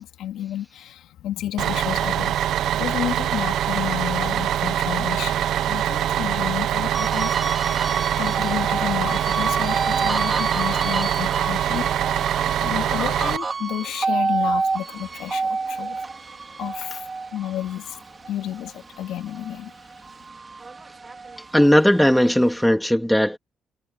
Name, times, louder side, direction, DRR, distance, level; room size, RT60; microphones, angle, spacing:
voice 1, 0.0-2.4 2.8-18.0 18.3-19.7, left 12 dB, 85° left, 2.9 m, -31 dB
Bus, 1.6-13.4, right 11 dB, 75° right, 0.7 m, -24 dB
sound 1, 6.9-19.6 20.0-21.7, right 4 dB, 30° right, 4.2 m, -29 dB
voice 2, 21.5-23.4, equal, 5° left, 2.5 m, -17 dB
cardioid pair, 90°, 0 cm